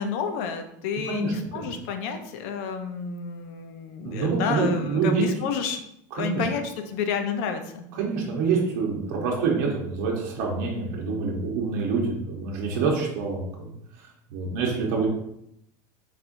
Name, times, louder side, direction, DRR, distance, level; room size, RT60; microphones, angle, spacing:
voice 1, 0.0-5.8 6.2-7.8, left 6 dB, 60° left, 7 dB, 0.6 m, -30 dB
voice 2, 1.1-1.7 4.0-5.2 6.1-6.5 8.0-13.7 14.3-15.1, right 5 dB, 60° right, -3 dB, 1.1 m, -26 dB
4.3 x 4.2 x 2.6 m, 0.75 s
supercardioid pair, 170°, 10 cm